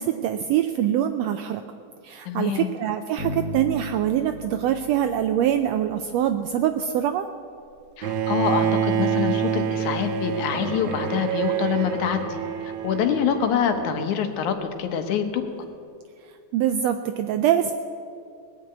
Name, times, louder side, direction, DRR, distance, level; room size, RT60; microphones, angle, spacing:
voice 1, 0.0-1.6 2.0-7.3 16.5-17.7, right 10 dB, 80° right, 8 dB, 1.5 m, -24 dB
voice 2, 2.3-2.7 8.0-15.4, left 8 dB, 80° left, 7 dB, 2.5 m, -26 dB
Bass guitar, 3.2-6.3, left 2 dB, 15° right, 0.9 m, -36 dB
Bowed string instrument, 8.0-14.1, right 8 dB, 65° right, 2.0 m, -27 dB
19.5 x 6.8 x 9.1 m, 2.4 s
omnidirectional pair, 3.4 m